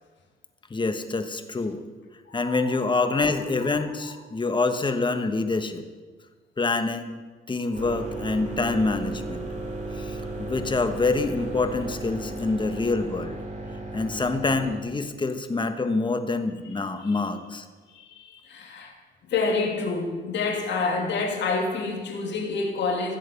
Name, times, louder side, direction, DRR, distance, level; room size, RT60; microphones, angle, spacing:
voice 1, 0.7-1.8 2.3-5.8 6.6-7.2 7.5-9.4 9.9-13.4 13.9-17.6, left 3 dB, 25° left, 8 dB, 1.3 m, -26 dB
voice 2, 2.3-2.7 3.1-3.2 3.7-4.1 7.7-7.8 17.0-17.2 17.9-18.9 19.2-23.2, left 4 dB, 65° left, 1 dB, 2.7 m, -28 dB
sound 1, 7.7-14.8, right 2 dB, 35° right, 2.8 m, -35 dB
15.5 x 7.6 x 7.0 m, 1.4 s
cardioid pair, 90°, 20 cm